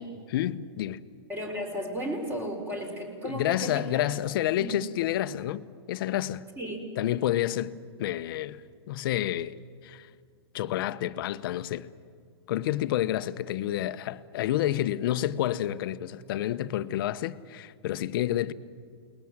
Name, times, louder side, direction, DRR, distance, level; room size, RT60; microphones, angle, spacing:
voice 1, 0.3-1.0 3.2-6.4 7.0-7.7 8.0-9.6 9.8-10.1 10.5-11.9 12.5-18.5, left 13 dB, 55° left, 1.0 m, -29 dB
voice 2, 1.3-4.0 4.5-4.8 6.6-6.8, equal, 15° right, 4.2 m, -34 dB
29.0 x 20.5 x 7.5 m
hypercardioid pair, 145°, 14 cm